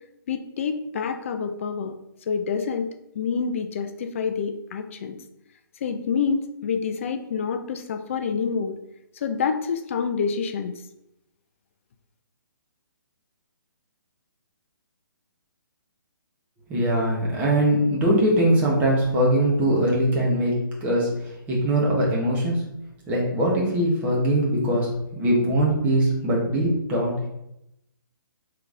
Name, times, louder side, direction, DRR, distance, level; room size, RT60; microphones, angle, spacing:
voice 1, 0.3-2.0 2.3-5.2 5.8-8.8 9.2-10.8, left 6 dB, 35° left, 7 dB, 0.3 m, -27 dB
voice 2, 16.7-22.6 23.1-27.3, right 1 dB, 15° right, -4 dB, 1.0 m, -22 dB
3.8 x 3.2 x 3.7 m, 0.83 s
hypercardioid pair, 155°, 12 cm